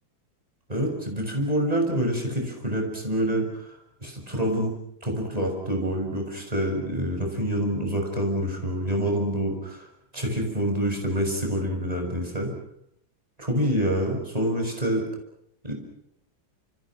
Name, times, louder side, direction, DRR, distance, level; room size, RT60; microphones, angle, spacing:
voice 1, 0.7-3.5 4.0-4.7 5.0-9.9 10.1-12.5 13.4-15.1 15.6-15.7, right 1 dB, 20° right, 2 dB, 6.7 m, -26 dB
29.0 x 28.5 x 6.1 m, 0.73 s
omnidirectional pair, 2.1 m